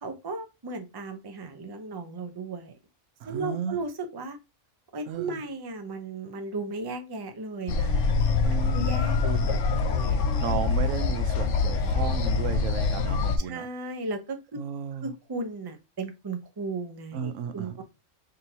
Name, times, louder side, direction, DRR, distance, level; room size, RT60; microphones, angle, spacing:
voice 1, 0.0-2.8 3.2-4.4 4.9-8.1 8.7-10.3 13.4-14.4 15.0-17.8, right 3 dB, 30° right, 0.5 m, -35 dB
voice 2, 3.2-3.8 5.1-5.4 8.4-8.9 9.2-9.4 10.4-13.7 14.6-15.1 17.1-17.8, right 7 dB, 85° right, 1.0 m, -34 dB
sound 1, 7.7-13.4, left 4 dB, 70° left, 1.0 m, -25 dB
5.2 x 2.8 x 2.7 m
omnidirectional pair, 1.3 m